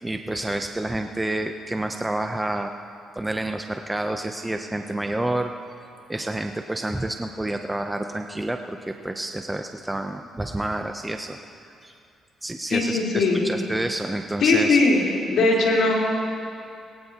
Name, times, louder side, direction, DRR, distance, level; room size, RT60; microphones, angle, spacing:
voice 1, 0.0-2.7 3.1-5.5 6.1-11.4 11.8-12.0 12.4-14.8, right 1 dB, 10° right, 5 dB, 0.6 m, -29 dB
voice 2, 12.7-13.4 14.4-15.0 15.3-15.9, left 3 dB, 75° left, -4 dB, 3.9 m, -19 dB
21.0 x 18.0 x 2.9 m, 2.5 s
cardioid pair, 90°, 0 cm